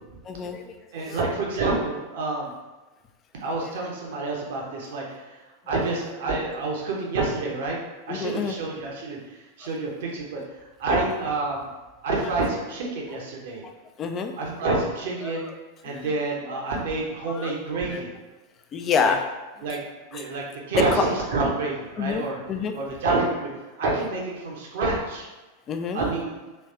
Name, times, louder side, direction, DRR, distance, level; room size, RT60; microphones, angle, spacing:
voice 1, 0.2-0.8 1.1-1.2 3.6-3.7 8.1-8.6 13.1-13.2 14.0-14.3 15.2-15.3 15.9-16.1 17.3-17.5 17.9-18.0 18.7-19.2 20.1-20.2 20.9-21.0 22.0-22.7 25.7-26.0, left 6 dB, 30° left, 6 dB, 0.4 m, -27 dB
voice 2, 0.9-2.5 3.4-5.4 5.7-7.8 8.1-11.7 12.0-13.6 14.4-15.5 15.8-18.1 19.0-19.2 19.6-19.8 20.1-22.4 22.7-23.5 23.8-25.3 25.9-26.4, right 3 dB, 55° right, -2 dB, 1.0 m, -28 dB
3.4 x 3.2 x 4.2 m, 1.2 s
figure-of-eight pair, 90°, 0 cm